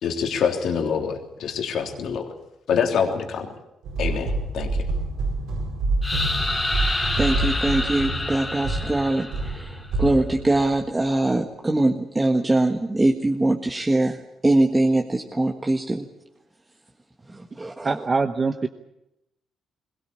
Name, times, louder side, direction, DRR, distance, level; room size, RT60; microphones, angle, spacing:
voice 1, 0.0-2.3 2.7-3.5 4.0-4.9, left 6 dB, 70° left, 3 dB, 3.3 m, -25 dB
sound 1, 3.8-11.1, right 2 dB, 85° right, 4.8 m, -27 dB
sound 2, 6.0-9.8, left 2 dB, 15° left, 3.0 m, -28 dB
voice 2, 7.2-16.1 17.3-18.0, right 2 dB, 15° right, 2 dB, 1.6 m, -22 dB
voice 3, 17.8-18.7, right 4 dB, 30° right, 7 dB, 1.0 m, -23 dB
21.5 x 18.0 x 8.6 m, 0.87 s
cardioid pair, 90°, 0 cm